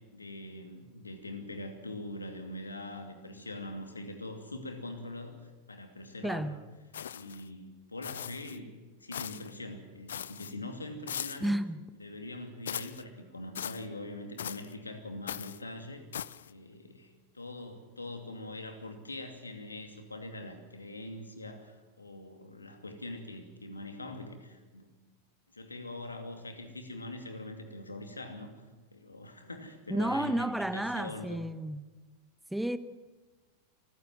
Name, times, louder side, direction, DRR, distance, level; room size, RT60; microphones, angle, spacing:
voice 1, 0.1-6.6 7.1-11.6 12.0-16.0 16.5-24.9 25.5-28.5 28.9-31.4, left 2 dB, 80° left, 2.7 m, -43 dB
voice 2, 6.2-6.6 11.4-11.8 29.9-31.8 32.5-32.8, right 1 dB, 5° right, 1.0 m, -31 dB
sound 1, 6.9-7.5 8.0-8.6 9.1-9.5 10.1-10.5 11.1-11.5 12.7-13.0 13.6-13.9 14.4-14.7 15.3-15.6 16.1-16.5, left 9 dB, 65° left, 0.6 m, -39 dB
26.0 x 15.5 x 7.6 m
figure-of-eight pair, 90°, 0 cm